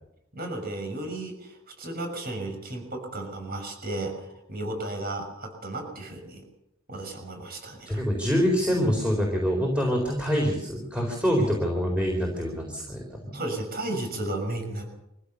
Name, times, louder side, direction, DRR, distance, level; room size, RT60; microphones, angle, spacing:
voice 1, 0.3-6.4 6.9-8.0 13.3-14.9, right 2 dB, 45° right, 4 dB, 6.2 m, -34 dB
voice 2, 7.8-13.4, equal, 5° right, 0 dB, 4.2 m, -25 dB
25.0 x 16.0 x 7.0 m, 0.84 s
head